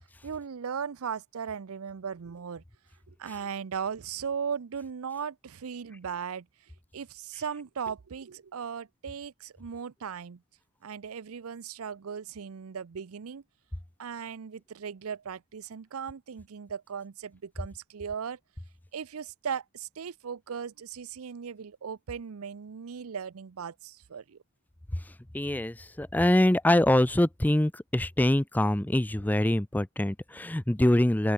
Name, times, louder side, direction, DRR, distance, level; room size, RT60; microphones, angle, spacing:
voice 1, 0.2-2.6 3.1-10.4 10.8-13.4 14.0-18.4 18.9-24.4, right 7 dB, 90° right, 0.5 m, -37 dB
voice 2, 25.3-31.3, left 1 dB, 10° left, 0.4 m, -24 dB
open air
head